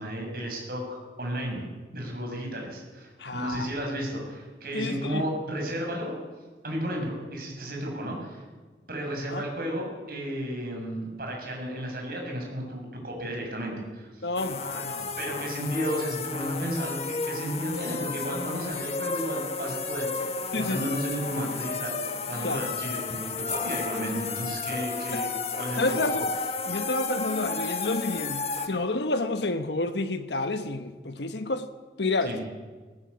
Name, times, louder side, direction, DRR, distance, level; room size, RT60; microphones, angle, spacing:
voice 1, 0.0-1.6 1.9-6.2 6.6-8.4 8.9-14.3 15.2-26.2 32.2-32.4, equal, 55° right, 6.9 m, -33 dB
voice 2, 3.2-3.7 4.7-5.2 9.3-9.4 14.2-15.5 20.5-20.9 22.4-22.7 25.1-25.2 25.8-26.3 26.6-31.7 32.0-32.3, left 2 dB, 80° left, 1.2 m, -30 dB
sound 1, 14.4-28.7, left 4 dB, 35° left, 1.6 m, -32 dB
19.0 x 18.5 x 8.4 m
head